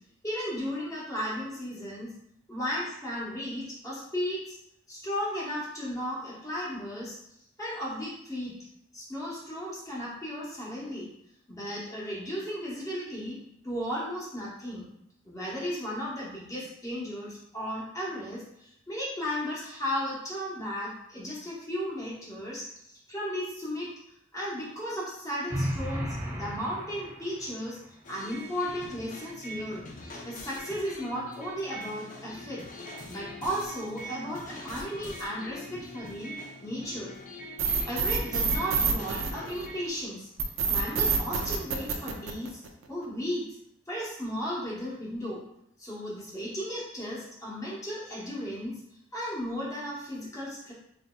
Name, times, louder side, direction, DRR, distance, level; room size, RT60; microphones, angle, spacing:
voice 1, 0.2-2.1 2.5-4.6 4.9-7.2 7.6-8.6 8.9-11.1 11.5-13.4 13.6-14.9 15.2-23.9 24.3-27.8 28.1-29.8 30.2-32.6 33.1-36.3 36.6-37.1 37.9-40.3 40.7-42.6 42.9-43.4 43.9-45.4 45.8-48.7 49.1-50.7, equal, 20° left, -6 dB, 0.9 m, -35 dB
sound 1, 25.5-27.5, equal, 15° right, 0.4 m, -34 dB
sound 2, 28.0-39.9, left 1 dB, 45° left, 0.5 m, -43 dB
sound 3, 37.6-39.9 40.4-42.8, right 5 dB, 90° right, 0.4 m, -27 dB
3.9 x 2.6 x 2.2 m, 0.75 s
head